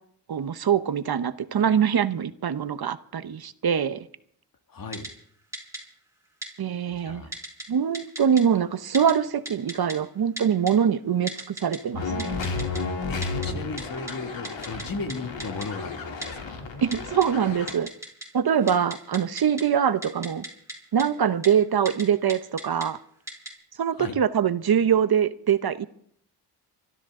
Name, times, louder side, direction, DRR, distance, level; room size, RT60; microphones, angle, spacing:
voice 1, 0.3-4.0 6.6-7.2 7.7-12.4 16.8-17.9 18.3-20.4 20.9-23.0 23.8-25.9, right 8 dB, 55° right, 0.9 m, -23 dB
voice 2, 4.7-5.1 6.9-7.3 13.1-16.6 23.9-24.2, left 3 dB, 50° left, 2.1 m, -36 dB
Typing, 4.9-5.1 5.5-5.8 6.4-6.5 7.3-7.6 7.9-8.4 8.9-9.1 9.5-9.9 10.4-10.7 11.3-11.8 12.2-12.8 13.2-13.5 13.8-13.9 14.1-14.2 14.4-14.8 15.1-15.2 15.4-15.7 16.2-16.3 16.9-17.3 17.7-18.3 18.6-19.6 20.0-20.7 21.0-21.1 21.4-21.5 21.9-22.0 22.3-22.9 23.3-23.5, right 1 dB, 5° right, 5.8 m, -35 dB
sound 1, 11.9-17.7, left 4 dB, 85° left, 3.1 m, -32 dB
24.5 x 13.5 x 3.8 m
cardioid pair, 80°, 44 cm